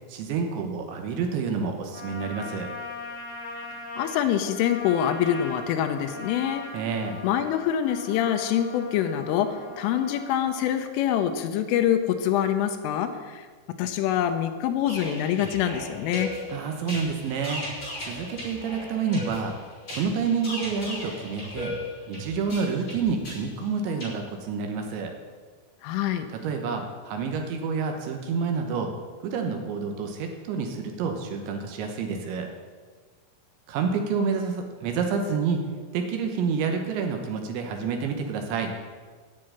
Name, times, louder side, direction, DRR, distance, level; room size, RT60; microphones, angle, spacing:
voice 1, 0.1-2.7 6.7-7.2 16.5-17.6 18.0-19.5 19.9-21.7 22.1-25.1 26.3-28.9 29.2-32.5 33.7-35.6 35.9-38.7, right 5 dB, 75° right, 4 dB, 3.2 m, -28 dB
Trumpet, 1.9-10.6, left 3 dB, 50° left, 3.0 m, -40 dB
voice 2, 4.0-6.7 7.2-13.5 13.8-16.3 25.8-26.3, left 10 dB, 85° left, 7 dB, 3.3 m, -25 dB
sound 1, 14.8-24.1, left 1 dB, 20° left, 4.3 m, -37 dB
9.8 x 7.5 x 9.0 m, 1.5 s
omnidirectional pair, 5.8 m